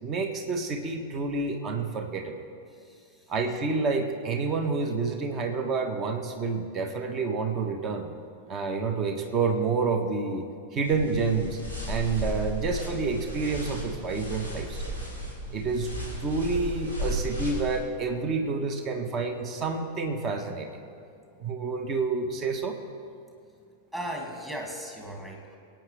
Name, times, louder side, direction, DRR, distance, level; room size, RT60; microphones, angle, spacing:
voice 1, 0.0-2.3 3.3-8.1 8.5-11.6 11.9-14.9 15.5-15.9 16.2-20.7 21.4-22.8, right 4 dB, 30° right, 6 dB, 1.3 m, -29 dB
voice 2, 2.7-3.3 23.9-25.6, right 1 dB, 10° right, 0 dB, 2.5 m, -37 dB
sound 1, 10.8-17.8, right 1 dB, 75° right, 3.3 m, -34 dB
24.5 x 9.0 x 3.4 m, 2.4 s
figure-of-eight pair, 90°, 0 cm